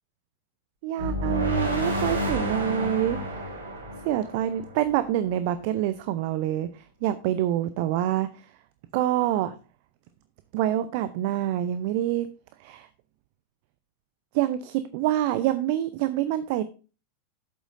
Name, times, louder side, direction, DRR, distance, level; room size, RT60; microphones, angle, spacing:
voice 1, 0.8-3.5 4.0-8.3 8.9-9.6 10.5-12.3 12.6-12.9 14.3-16.6, right 12 dB, 45° right, 13 dB, 0.5 m, -26 dB
sound 1, 1.0-5.1, equal, 75° right, 2.1 m, -30 dB
11.5 x 8.0 x 2.6 m, 0.34 s
figure-of-eight pair, 90°, 0 cm